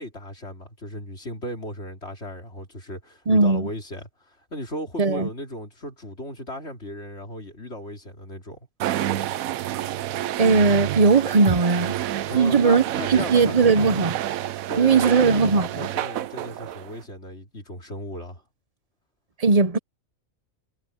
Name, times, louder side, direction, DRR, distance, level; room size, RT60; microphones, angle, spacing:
voice 1, 0.0-8.6 12.3-13.9 14.7-18.4, left 1 dB, 50° left, 4.3 m, -36 dB
voice 2, 3.3-3.7 5.0-5.3 10.4-12.0 12.3-12.8 13.1-14.2 14.8-15.9 19.4-19.8, right 4 dB, 35° right, 0.8 m, -18 dB
sound 1, 8.8-17.0, right 13 dB, 80° right, 1.1 m, -29 dB
omnidirectional pair, 1.4 m